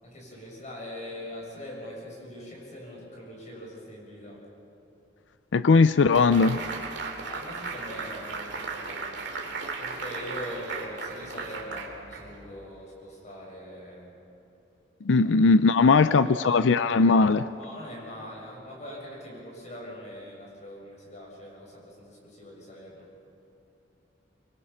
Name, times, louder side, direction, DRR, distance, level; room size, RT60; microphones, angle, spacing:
voice 1, 0.0-4.4 7.2-9.1 9.8-14.1 15.2-15.3 15.7-16.4 17.6-23.1, equal, 40° left, -3 dB, 7.3 m, -42 dB
voice 2, 5.5-6.6 15.1-17.4, left 4 dB, 75° left, 13 dB, 0.5 m, -19 dB
sound 1, 6.1-12.6, right 4 dB, 65° right, 2.5 m, -36 dB
25.5 x 24.0 x 5.8 m, 2.8 s
head